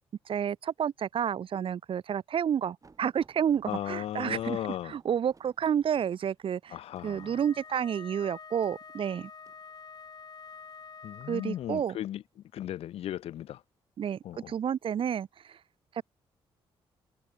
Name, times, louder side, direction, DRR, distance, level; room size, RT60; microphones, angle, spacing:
voice 1, 0.3-6.8 7.0-9.3 11.3-12.0 14.0-14.2 14.5-15.6, right 8 dB, 60° right, 1.1 m, -30 dB
sound 1, 2.8-9.6 10.4-10.8 11.8-12.4 13.1-13.3 13.7-13.8, right 4 dB, 35° right, 6.4 m, -61 dB
voice 2, 3.7-4.9 6.7-7.3 11.0-12.2 12.5-13.6 14.2-14.5, left 12 dB, 75° left, 0.6 m, -36 dB
Wind instrument woodwind instrument, 7.0-11.7, left 5 dB, 40° left, 3.2 m, -48 dB
open air
cardioid pair, 75°, 10 cm